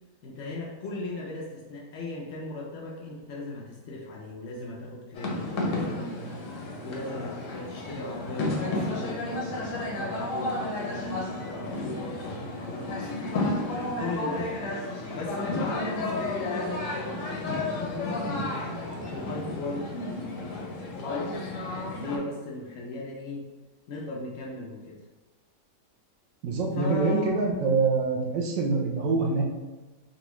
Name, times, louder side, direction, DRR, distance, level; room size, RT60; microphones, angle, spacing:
voice 1, 0.2-13.3 14.0-14.6 15.1-18.6 19.1-23.5 23.9-25.0 26.8-27.3, left 2 dB, 85° left, -2 dB, 0.6 m, -37 dB
sound 1, 5.1-22.2, left 2 dB, 65° left, 0.8 m, -32 dB
voice 2, 26.4-29.4, right 4 dB, 70° right, -1 dB, 0.8 m, -25 dB
3.9 x 2.3 x 2.9 m, 1.2 s
omnidirectional pair, 1.8 m